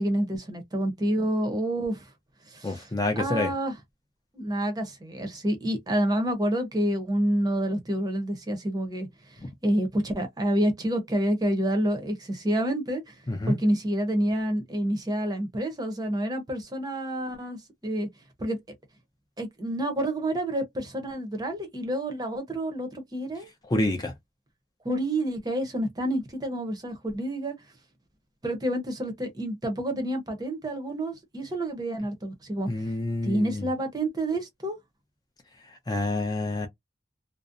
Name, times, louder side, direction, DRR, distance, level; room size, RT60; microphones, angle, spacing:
voice 1, 0.0-2.0 2.5-2.9 3.2-3.8 4.3-13.1 13.5-18.1 18.4-18.6 19.4-23.5 24.8-27.5 28.4-32.9 33.2-34.8, right 1 dB, 20° right, 0.7 m, -28 dB
voice 2, 2.6-3.5 13.3-13.6 23.7-24.1 32.7-33.6 35.9-36.7, left 2 dB, 20° left, 0.4 m, -27 dB
2.5 x 2.0 x 2.5 m
head